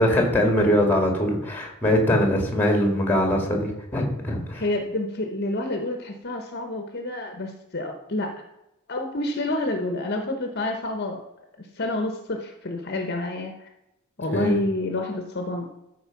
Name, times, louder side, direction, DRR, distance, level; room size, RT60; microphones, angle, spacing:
voice 1, 0.0-4.6 14.3-14.6, equal, 10° left, 2 dB, 2.1 m, -22 dB
voice 2, 4.6-8.3 8.9-11.2 11.6-13.7 14.2-15.8, left 2 dB, 50° left, 5 dB, 1.1 m, -28 dB
13.0 x 4.7 x 5.9 m, 0.89 s
head